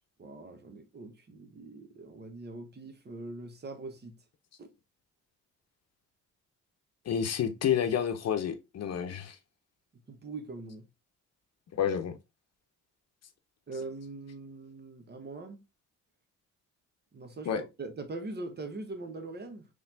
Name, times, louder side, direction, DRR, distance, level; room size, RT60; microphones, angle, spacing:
voice 1, 0.2-4.1 4.6-4.7 10.1-10.8 13.7-15.6 17.1-19.7, right 3 dB, 35° right, 0.9 m, -42 dB
voice 2, 7.1-9.4 11.7-12.1 17.4-17.6, left 8 dB, 55° left, 0.8 m, -29 dB
4.0 x 3.2 x 2.6 m
cardioid pair, 90°, 30 cm